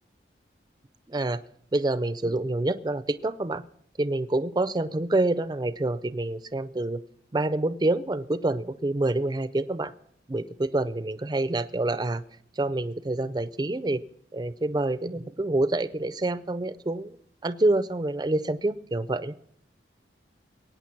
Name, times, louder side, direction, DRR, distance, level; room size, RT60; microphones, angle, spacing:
voice 1, 1.1-1.4 1.7-3.6 4.0-7.0 7.3-9.9 10.3-12.2 12.6-14.0 14.3-17.2 17.4-19.4, right 2 dB, 25° right, 14 dB, 0.5 m, -27 dB
22.0 x 9.1 x 5.9 m, 0.64 s
head